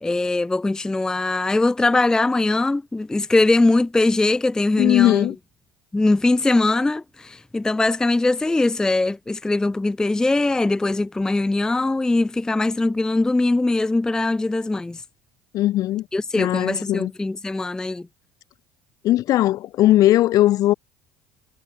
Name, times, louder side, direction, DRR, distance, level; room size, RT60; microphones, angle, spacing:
voice 1, 0.0-5.3 5.9-15.0 16.1-18.1, left 2 dB, 10° left, 0.4 m, -21 dB
voice 2, 4.8-5.4 15.5-16.1 16.4-17.1 19.0-20.7, left 14 dB, 60° left, 1.0 m, -18 dB
supercardioid pair, 80°, 7 cm